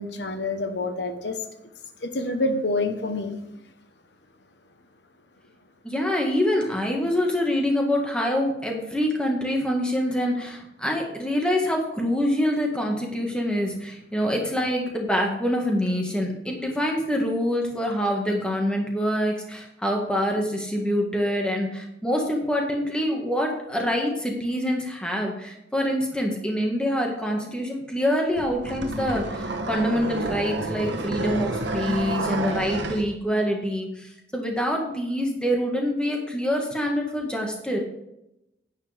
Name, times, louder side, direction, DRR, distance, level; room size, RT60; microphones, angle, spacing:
voice 1, 0.0-1.4 2.0-3.4, left 2 dB, 80° left, 1.1 m, -27 dB
voice 2, 5.8-37.8, equal, 5° left, 1.7 m, -25 dB
sound 1, 28.4-33.1, right 2 dB, 80° right, 1.2 m, -29 dB
10.5 x 9.8 x 3.5 m
head